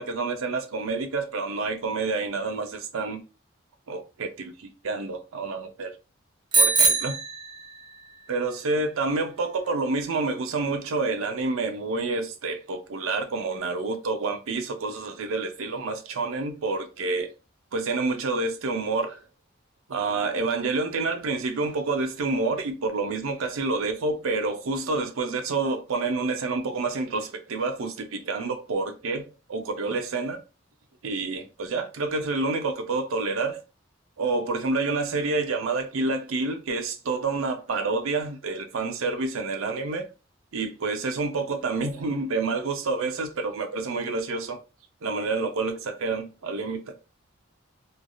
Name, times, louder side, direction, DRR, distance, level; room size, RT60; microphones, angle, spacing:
voice 1, 0.0-3.2 3.9-5.9 6.5-7.2 8.3-17.3 17.7-19.2 19.9-30.4 31.0-33.6 34.2-40.0 40.5-44.6 45.0-46.9, right 3 dB, 85° right, 0.5 m, -28 dB
Bicycle bell, 6.5-8.1, right 4 dB, 25° right, 0.5 m, -22 dB
3.2 x 2.3 x 2.5 m
head